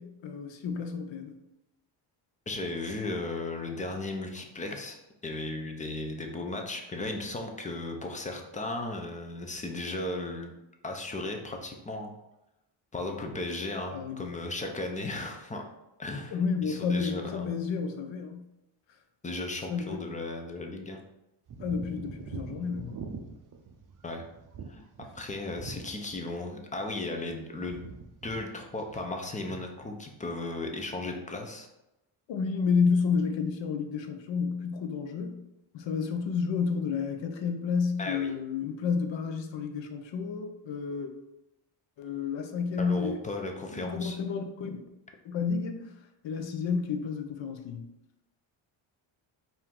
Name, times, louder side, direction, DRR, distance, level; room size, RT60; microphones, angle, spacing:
voice 1, 0.0-1.4 13.9-14.3 16.3-18.4 19.7-20.0 21.6-23.0 32.3-35.4 35.7-41.1 42.0-43.2 43.7-44.8 45.2-45.9 46.2-47.9, left 5 dB, 60° left, 5 dB, 0.7 m, -30 dB
voice 2, 2.5-10.5 10.8-12.1 12.9-15.7 16.0-16.3 16.6-17.5 19.2-21.0 24.0-24.2 24.7-24.8 25.1-27.9 28.2-31.7 38.0-38.3 42.8-44.2, left 2 dB, 15° left, 3 dB, 0.4 m, -36 dB
sound 1, 21.5-26.4 26.7-27.4 27.6-28.4 28.7-29.1, right 5 dB, 40° right, 0.5 m, -43 dB
4.6 x 2.7 x 3.6 m, 0.92 s
cardioid pair, 150°, 50 cm